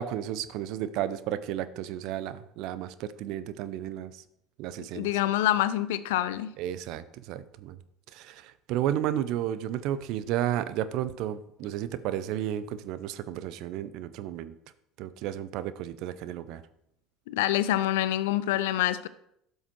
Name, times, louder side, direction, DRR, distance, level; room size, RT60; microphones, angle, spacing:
voice 1, 0.0-4.2 4.6-5.1 6.6-7.8 8.1-14.5 15.0-16.6, right 11 dB, 60° right, 14 dB, 0.7 m, -32 dB
voice 2, 4.9-6.5 17.3-19.1, left 13 dB, 70° left, 14 dB, 0.6 m, -26 dB
12.5 x 6.5 x 4.6 m, 0.76 s
hypercardioid pair, 65°, 0 cm